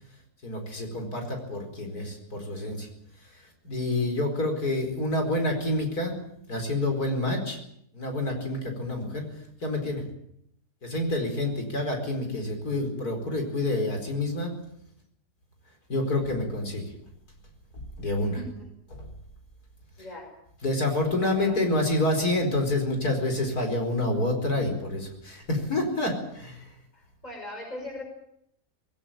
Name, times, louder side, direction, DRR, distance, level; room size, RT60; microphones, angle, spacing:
voice 1, 0.4-2.9 3.6-6.1 6.5-7.6 7.9-9.3 9.6-10.0 10.8-14.5 15.9-16.9 18.0-18.4 18.9-19.1 20.6-26.7, left 1 dB, 90° left, 4 dB, 5.2 m, -28 dB
voice 2, 18.1-18.7 20.0-20.3 21.2-21.6 26.9-28.0, left 1 dB, 25° left, 2 dB, 5.6 m, -40 dB
20.0 x 18.0 x 8.9 m, 0.74 s
omnidirectional pair, 1.6 m